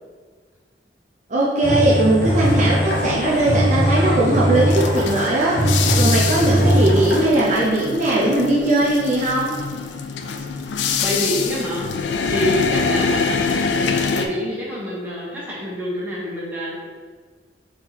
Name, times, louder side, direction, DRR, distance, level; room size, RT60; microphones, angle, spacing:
voice 1, 1.3-5.6 6.0-9.5, right 1 dB, 45° right, -7 dB, 0.7 m, -19 dB
sound 1, 1.6-7.3, equal, 60° left, 0.9 m, -20 dB
sound 2, 2.4-14.3, left 5 dB, 85° left, 0.4 m, -25 dB
voice 2, 11.0-13.6 14.1-16.8, equal, 10° right, -7 dB, 1.2 m, -26 dB
4.4 x 3.0 x 4.0 m, 1.5 s
head